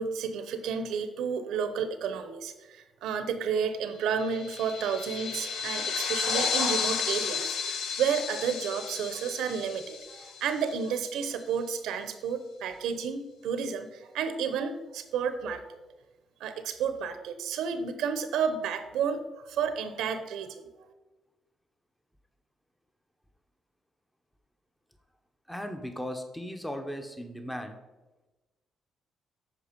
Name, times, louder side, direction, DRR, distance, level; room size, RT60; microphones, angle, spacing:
voice 1, 0.0-15.6 16.4-19.2 19.4-20.7, right 6 dB, 85° right, 9 dB, 0.8 m, -31 dB
sound 1, 4.1-11.0, left 6 dB, 85° left, 0.8 m, -32 dB
voice 2, 25.5-27.8, equal, 5° left, 6 dB, 0.9 m, -37 dB
8.3 x 5.2 x 5.2 m, 1.1 s
cardioid pair, 90°, 0 cm